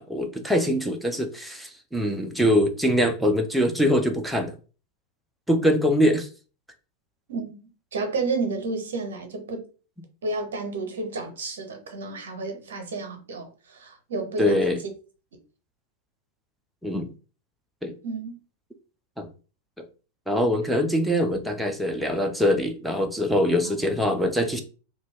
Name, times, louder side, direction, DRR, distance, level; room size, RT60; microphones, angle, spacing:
voice 1, 0.0-4.5 5.5-6.3 14.4-14.8 16.8-17.1 17.8-17.9 19.2-19.3 20.3-24.6, equal, ahead, 0.4 m, -23 dB
voice 2, 7.9-9.6 10.2-14.7 18.0-18.3 20.7-20.8, right 3 dB, 65° right, 0.8 m, -31 dB
2.6 x 2.2 x 3.4 m
figure-of-eight pair, 90°, 0 cm